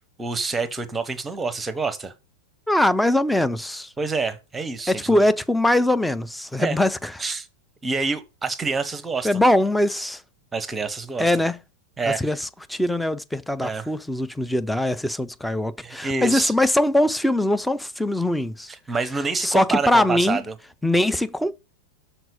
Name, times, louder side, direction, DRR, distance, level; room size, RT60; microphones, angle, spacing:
voice 1, 0.2-2.1 4.0-5.2 6.6-6.8 7.2-7.5 7.8-9.4 10.5-11.3 12.0-12.4 13.6-13.9 15.8-16.5 18.9-20.6, right 4 dB, 15° right, 0.9 m, -27 dB
voice 2, 2.7-3.9 4.9-7.1 9.2-10.2 11.2-11.6 12.1-18.7 19.4-20.4 20.8-21.5, left 1 dB, 5° left, 0.5 m, -22 dB
6.0 x 4.4 x 5.1 m
figure-of-eight pair, 90°, 0 cm